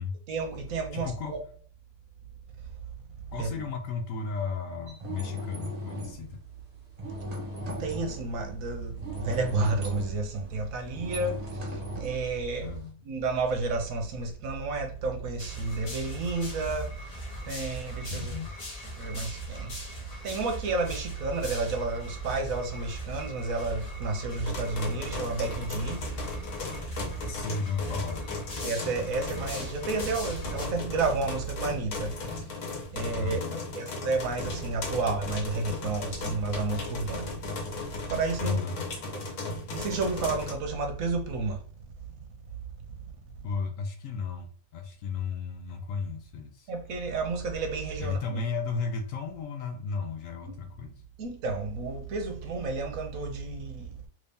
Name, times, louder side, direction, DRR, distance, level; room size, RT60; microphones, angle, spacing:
voice 1, 0.3-1.4 3.4-3.6 7.8-12.8 13.0-17.0 17.4-18.4 18.9-26.7 28.6-32.4 32.9-33.4 33.7-37.5 38.1-38.6 39.1-39.2 39.7-41.6 43.0-43.1 46.7-48.2 50.4-50.6 51.2-54.0, right 3 dB, 70° right, 1.1 m, -31 dB
voice 2, 0.9-1.4 3.3-6.4 12.6-13.0 18.1-18.5 27.3-28.3 33.2-33.6 38.4-38.8 43.4-46.7 48.0-51.0, left 5 dB, 70° left, 0.9 m, -34 dB
sound 1, 4.9-6.2 7.0-8.3 9.0-12.9, equal, 35° right, 0.8 m, -37 dB
sound 2, 15.4-30.7, equal, 35° left, 0.7 m, -40 dB
sound 3, 24.5-40.5, left 3 dB, 90° left, 1.4 m, -37 dB
3.1 x 2.7 x 3.4 m
omnidirectional pair, 1.5 m